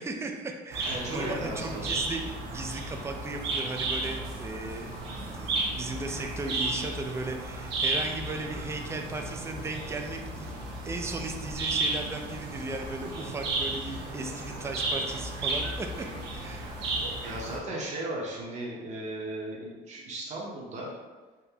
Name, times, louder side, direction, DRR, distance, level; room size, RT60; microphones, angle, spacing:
voice 1, 0.0-5.0 5.3-10.5 10.8-16.8, right 2 dB, 15° right, 3 dB, 0.4 m, -36 dB
sound 1, 0.7-17.6, right 2 dB, 85° right, 0.8 m, -33 dB
voice 2, 0.9-2.0 17.2-20.9, right 1 dB, 45° right, -4 dB, 0.8 m, -36 dB
3.7 x 2.6 x 2.8 m, 1.3 s
cardioid pair, 110°, 17 cm